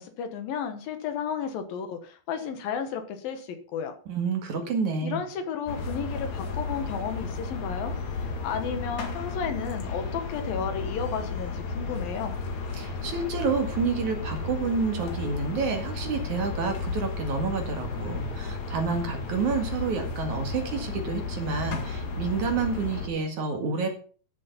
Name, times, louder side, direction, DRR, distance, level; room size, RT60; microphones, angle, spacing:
voice 1, 0.0-4.0 5.0-12.4, left 7 dB, 70° left, 7 dB, 2.9 m, -33 dB
voice 2, 4.1-5.2 12.7-23.9, right 5 dB, 55° right, 5 dB, 3.0 m, -29 dB
sound 1, 5.7-23.1, left 4 dB, 50° left, 3.0 m, -33 dB
13.0 x 7.3 x 5.7 m, 0.41 s
omnidirectional pair, 4.5 m